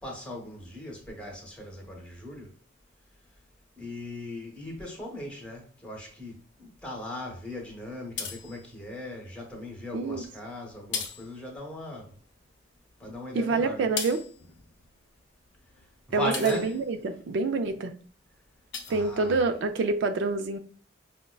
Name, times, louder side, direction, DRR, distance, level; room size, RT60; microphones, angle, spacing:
voice 1, 0.0-2.5 3.8-12.2 13.0-13.9 16.1-16.7 18.9-19.4, left 1 dB, 5° left, 0.9 m, -38 dB
sound 1, 8.2-9.1 9.8-10.4 10.7-12.2 12.5-17.4 17.8-18.1 18.4-19.8, left 6 dB, 65° left, 0.5 m, -40 dB
voice 2, 9.9-10.2 13.3-14.2 16.1-17.9 18.9-20.6, right 3 dB, 70° right, 0.4 m, -27 dB
5.1 x 2.1 x 2.2 m
head